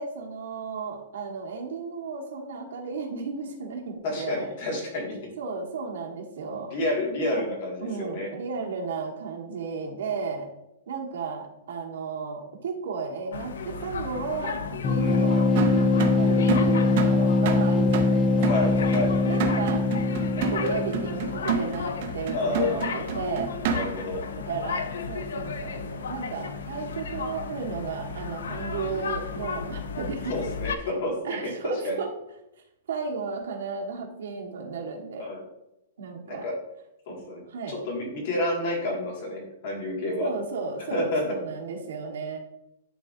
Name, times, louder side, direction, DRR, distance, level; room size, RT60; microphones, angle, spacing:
voice 1, 0.0-4.5 5.4-6.7 7.3-7.5 7.8-10.5 10.9-15.5 15.8-18.7 19.2-19.8 20.3-23.5 24.4-30.4 30.8-30.9 31.2-32.1 32.9-35.3 36.0-36.5 37.1-37.8 40.2-42.4, right 5 dB, 75° right, 0 dB, 1.4 m, -34 dB
voice 2, 4.0-5.2 6.5-8.3 15.0-15.2 18.4-19.1 22.3-23.0 23.7-24.2 30.3-31.4 31.8-31.9 35.2-35.4 36.3-36.5 37.1-37.4 37.7-40.3 40.9-41.2, left 1 dB, 40° left, -1 dB, 1.9 m, -29 dB
sound 1, 13.3-30.8, left 5 dB, 80° left, 0.5 m, -34 dB
sound 2, 14.8-21.5, left 3 dB, 15° left, 0.3 m, -23 dB
sound 3, 15.6-24.2, right 6 dB, 40° right, 0.6 m, -30 dB
11.0 x 3.7 x 2.6 m, 0.88 s
hypercardioid pair, 180°, 0 cm